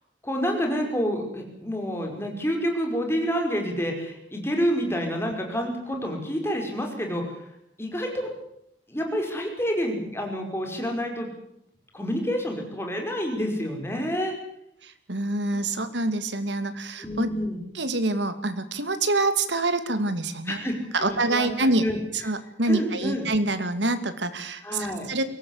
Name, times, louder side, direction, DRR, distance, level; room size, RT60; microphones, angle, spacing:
voice 1, 0.2-7.4 7.8-8.3 8.9-11.3 11.9-14.3 15.5-15.6 17.0-17.6 20.5-22.0 22.7-23.3 24.6-25.1, equal, 15° left, 2 dB, 5.3 m, -28 dB
voice 2, 14.8-17.3 17.7-20.6 20.9-21.8 22.1-25.2, right 2 dB, 85° right, 10 dB, 2.5 m, -26 dB
23.0 x 18.0 x 8.2 m, 0.76 s
head